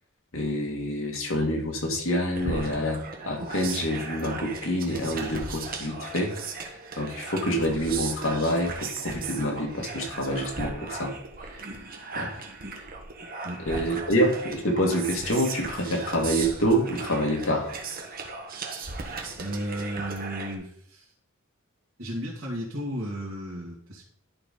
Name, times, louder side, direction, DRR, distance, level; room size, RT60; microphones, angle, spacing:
voice 1, 0.3-3.0 3.2-6.3 7.0-11.1 12.1-12.3 13.7-17.7, equal, 70° left, 1 dB, 2.0 m, -27 dB
sound 1, 2.3-20.5, right 4 dB, 45° right, 1.3 m, -37 dB
voice 2, 19.4-21.1 22.0-24.0, equal, 65° right, -5 dB, 2.2 m, -34 dB
11.5 x 4.1 x 5.4 m, 0.65 s
head